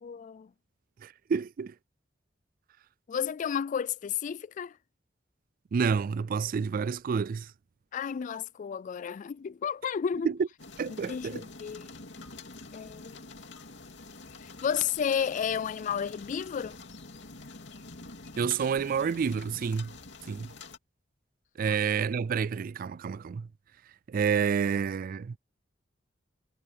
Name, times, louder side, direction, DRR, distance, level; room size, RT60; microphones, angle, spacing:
voice 1, 0.0-0.5 3.1-4.8 7.9-10.3 10.9-11.9 12.7-13.2 14.4-16.8 21.7-21.8, left 7 dB, 40° left, 0.3 m, -32 dB
voice 2, 1.0-1.7 5.7-7.5 10.2-10.3 10.8-11.4 18.4-19.9 20.3-20.5 21.6-23.5 24.1-25.4, right 6 dB, 50° right, 0.3 m, -29 dB
sound 1, 10.6-20.8, left 3 dB, 65° left, 2.9 m, -47 dB
head